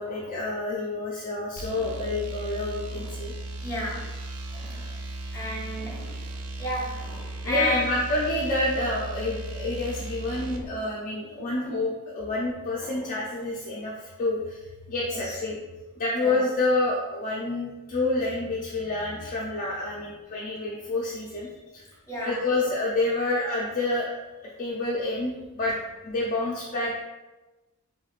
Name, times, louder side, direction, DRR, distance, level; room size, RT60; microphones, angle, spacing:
voice 1, 0.0-3.3 7.4-14.6 14.9-15.6 16.0-21.9 22.2-25.7 26.0-27.0, left 2 dB, 35° left, -4 dB, 0.4 m, -28 dB
sound 1, 1.6-10.6, right 2 dB, 80° right, 0.5 m, -36 dB
voice 2, 3.6-4.0 4.5-4.9 5.3-6.2 6.6-7.9 10.3-10.6 11.5-11.7 12.8-13.0 15.1-15.4 16.2-16.3 22.1-22.4, left 1 dB, 15° left, -6 dB, 1.2 m, -33 dB
3.4 x 3.1 x 2.3 m, 1.1 s
head